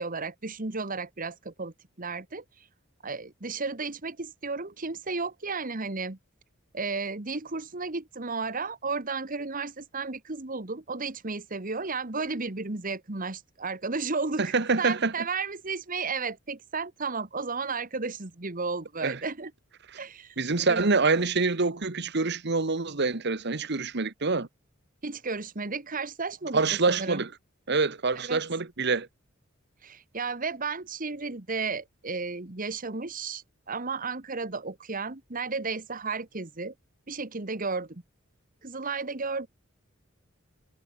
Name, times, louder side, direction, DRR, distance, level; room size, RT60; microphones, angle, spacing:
voice 1, 0.0-2.4 3.0-6.2 6.7-19.5 20.0-20.4 20.7-20.9 25.0-27.2 28.2-28.4 29.8-36.7 37.1-38.0 38.6-39.5, right 4 dB, 45° right, 1.6 m, -33 dB
voice 2, 14.5-15.1 19.0-19.2 20.4-24.5 26.5-27.3 27.7-29.1, right 4 dB, 60° right, 1.4 m, -26 dB
head